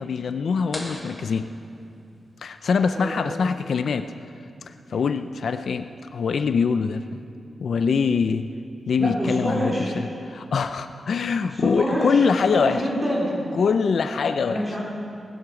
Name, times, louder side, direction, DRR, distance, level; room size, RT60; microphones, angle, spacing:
voice 1, 0.0-1.5 2.4-4.1 4.7-7.2 7.6-8.5 8.9-12.8 13.6-14.6, left 5 dB, 65° left, 10 dB, 0.4 m, -24 dB
sound 1, 0.7-2.4, left 1 dB, 10° left, 1.9 m, -39 dB
voice 2, 2.9-3.3 9.0-9.9 11.5-13.3 14.4-14.8, equal, 15° right, -5 dB, 4.2 m, -27 dB
19.0 x 12.0 x 5.1 m, 2.5 s
wide cardioid pair, 160°, 0 cm